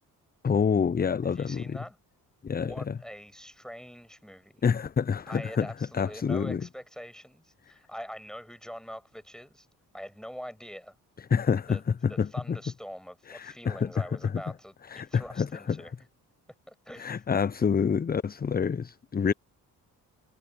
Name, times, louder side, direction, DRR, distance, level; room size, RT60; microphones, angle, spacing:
voice 1, 0.4-1.8 2.4-3.0 4.6-5.7 5.9-6.6 11.3-12.3 13.3-13.9 14.9-15.8 17.0-19.3, left 6 dB, 20° left, 0.6 m, -27 dB
voice 2, 1.2-2.0 2.6-4.6 5.3-9.7 9.9-11.0 11.7-11.8 12.1-15.9 16.7-17.2, equal, ahead, 6.9 m, -44 dB
hypercardioid pair, 45°, 42 cm